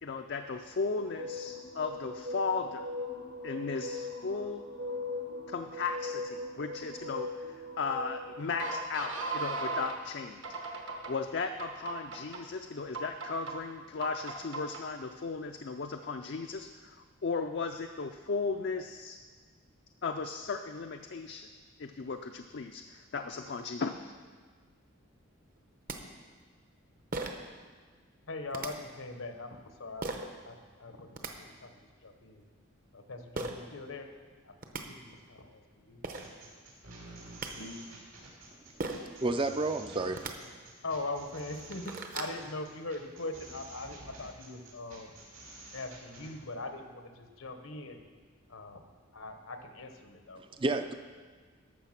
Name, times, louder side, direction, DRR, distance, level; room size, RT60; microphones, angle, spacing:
voice 1, 0.0-2.8 3.4-4.6 5.5-17.0 17.2-19.2 20.0-21.5 21.8-24.1, left 4 dB, 55° left, 5 dB, 0.4 m, -36 dB
sound 1, 1.0-10.0 10.4-11.1 11.6-12.4 12.9-13.5 14.0-14.8, equal, 65° right, 1.3 m, -39 dB
sound 2, 25.6-25.7 25.9-26.0 27.1-27.5 28.5-28.7 30.0-30.3 30.9-31.3 33.3-33.5 34.3-34.4 34.6-34.8 35.7-35.8 36.0-36.3 37.1-37.5 38.8-39.1 40.1-40.3 41.0-41.1 41.5-42.4, right 3 dB, 40° right, 0.8 m, -37 dB
voice 2, 28.3-32.4 32.9-34.1 34.4-34.5 34.9-36.0 37.6-37.8 40.8-45.2 45.7-48.0 48.5-48.8 49.1-50.4, left 2 dB, 80° left, 6 dB, 1.0 m, -41 dB
sound 3, 36.1-46.3, right 2 dB, 85° right, 2.9 m, -50 dB
voice 3, 39.2-40.2 50.6-50.9, right 2 dB, 25° right, 8 dB, 0.4 m, -30 dB
12.5 x 6.9 x 5.8 m, 1.5 s
head